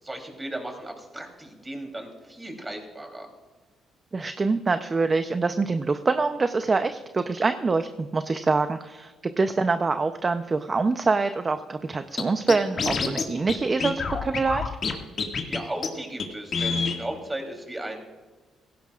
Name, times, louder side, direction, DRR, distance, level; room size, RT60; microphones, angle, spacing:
voice 1, 0.0-3.3 15.5-18.0, right 1 dB, 15° right, 3 dB, 3.4 m, -36 dB
voice 2, 4.1-14.7, right 3 dB, 30° right, 8 dB, 0.7 m, -25 dB
Scratching (performance technique), 12.2-12.3 12.5-13.2 13.5-13.6 13.8-14.9 15.2-15.6 15.8-15.9 16.2-16.3 16.5-17.0, left 5 dB, 50° left, 2.0 m, -26 dB
17.5 x 16.5 x 2.5 m, 1.3 s
cardioid pair, 90°, 0 cm